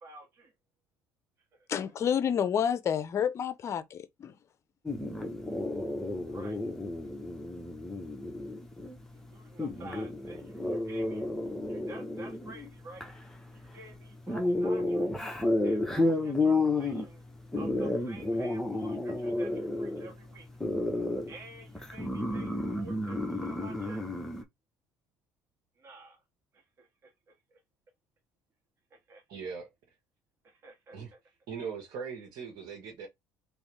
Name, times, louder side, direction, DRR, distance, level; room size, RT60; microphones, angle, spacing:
voice 1, 1.7-4.3, left 8 dB, 45° left, 0.6 m, -29 dB
sound 1, 4.9-24.4, left 2 dB, 5° left, 1.1 m, -32 dB
voice 2, 9.5-10.4 10.9-11.2 11.7-13.0 13.7-15.1 15.6-17.2 17.6-19.5 19.8-20.5 21.3-22.5 22.8-24.0 25.8-26.1 29.1-29.2 30.6-31.0, right 2 dB, 40° right, 1.9 m, -49 dB
voice 3, 29.3-29.7 30.9-31.1 31.5-33.1, right 6 dB, 70° right, 1.5 m, -40 dB
3.5 x 3.0 x 3.3 m
supercardioid pair, 90°, 7 cm